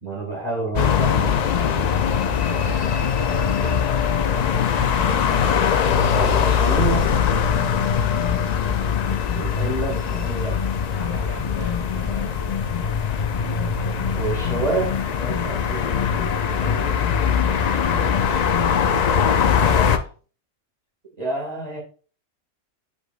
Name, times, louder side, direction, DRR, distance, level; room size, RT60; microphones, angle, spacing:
voice 1, 0.0-2.0 3.6-3.7 6.1-7.1 9.3-10.6 14.1-17.0 21.2-21.8, right 3 dB, 30° right, -1 dB, 2.1 m, -29 dB
sound 1, 0.8-20.0, left 7 dB, 70° left, 0.4 m, -21 dB
voice 2, 2.0-4.5 8.1-8.5 10.1-10.3 10.8-12.8 17.5-20.1, equal, 25° left, 0 dB, 1.3 m, -38 dB
8.0 x 5.1 x 2.4 m, 0.38 s
omnidirectional pair, 1.3 m